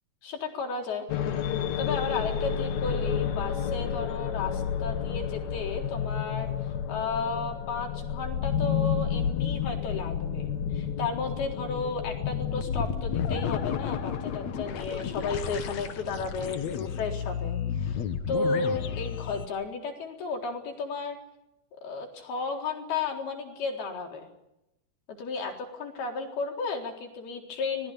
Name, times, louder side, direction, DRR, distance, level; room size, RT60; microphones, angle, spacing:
voice 1, 0.2-1.1 1.8-21.2 21.8-24.3 25.1-27.9, left 4 dB, 75° left, 2 dB, 5.9 m, -33 dB
sound 1, 1.1-19.5, left 8 dB, 55° left, 2.3 m, -31 dB
25.5 x 20.0 x 8.5 m, 0.89 s
omnidirectional pair, 4.5 m